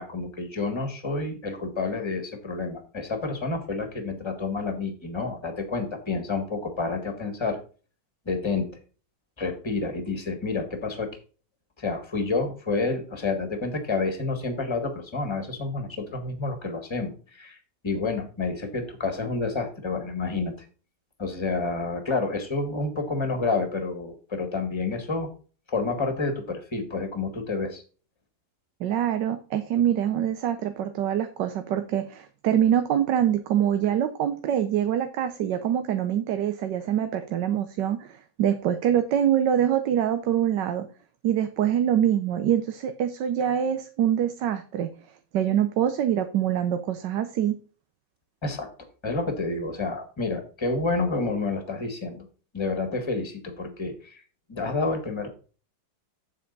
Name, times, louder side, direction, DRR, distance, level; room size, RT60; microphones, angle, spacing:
voice 1, 0.0-7.6 8.2-8.7 9.4-11.1 11.8-17.6 17.8-20.5 21.2-25.3 25.7-27.8 48.4-48.7 49.0-52.2 52.5-54.2 54.5-55.3, left 3 dB, 15° left, 6 dB, 1.5 m, -29 dB
voice 2, 28.8-40.9 41.2-44.9 45.3-47.6, right 10 dB, 75° right, 9 dB, 1.4 m, -24 dB
7.7 x 7.7 x 4.0 m, 0.37 s
omnidirectional pair, 1.9 m